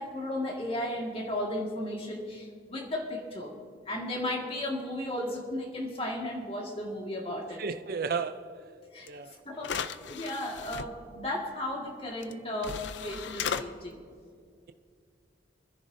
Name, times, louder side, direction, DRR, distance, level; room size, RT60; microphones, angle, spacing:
voice 1, 0.0-3.5 3.8-7.6 8.9-14.0, left 1 dB, 30° left, 1.8 m, -35 dB
voice 2, 7.6-8.5 9.1-9.3, right 5 dB, 50° right, 0.5 m, -33 dB
sound 1, 9.1-9.2 9.6-10.9 12.2-12.3 12.6-13.6, left 7 dB, 75° left, 0.5 m, -35 dB
25.5 x 10.5 x 2.7 m
head